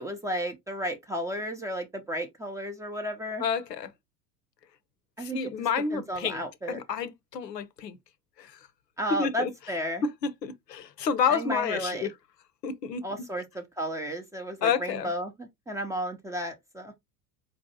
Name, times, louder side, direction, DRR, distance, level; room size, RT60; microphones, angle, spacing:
voice 1, 0.0-3.4 5.2-6.8 9.0-10.0 11.3-12.1 13.0-16.9, equal, 5° right, 0.4 m, -33 dB
voice 2, 3.4-3.9 5.2-6.4 6.7-8.0 8.4-8.5 9.2-9.5 10.0-12.1 12.6-13.0 14.6-15.1, left 6 dB, 90° left, 0.6 m, -29 dB
4.3 x 2.6 x 2.7 m
figure-of-eight pair, 75°, 48 cm